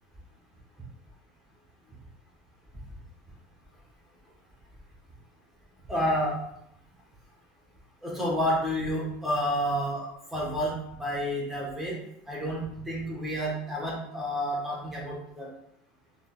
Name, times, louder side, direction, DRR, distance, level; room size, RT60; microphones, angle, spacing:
voice 1, 5.9-6.4 8.0-12.0 12.3-15.5, equal, 5° right, -4 dB, 1.0 m, -30 dB
3.8 x 3.5 x 2.2 m, 0.75 s
supercardioid pair, 170°, 4 cm